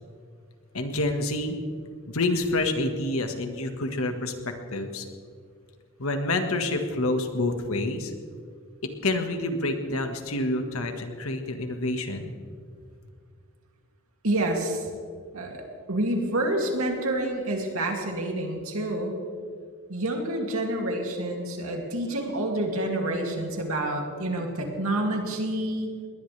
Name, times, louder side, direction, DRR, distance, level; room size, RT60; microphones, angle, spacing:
voice 1, 0.7-1.6 2.1-4.3 4.7-5.1 6.0-8.1 9.0-12.3, left 2 dB, 80° left, 6 dB, 1.7 m, -28 dB
voice 2, 14.2-14.9 15.3-19.2 19.9-25.9, right 1 dB, 80° right, 1 dB, 2.7 m, -28 dB
20.5 x 19.5 x 3.4 m, 2.1 s
head